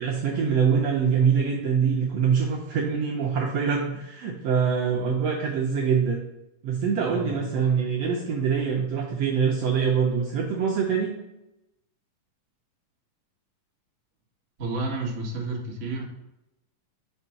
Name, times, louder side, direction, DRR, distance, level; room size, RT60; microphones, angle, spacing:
voice 1, 0.0-6.2 6.6-11.1, right 6 dB, 75° right, -1 dB, 1.5 m, -24 dB
voice 2, 7.0-7.4 14.6-16.1, right 3 dB, 60° right, -2 dB, 0.7 m, -31 dB
5.4 x 4.9 x 5.6 m, 0.92 s
omnidirectional pair, 3.8 m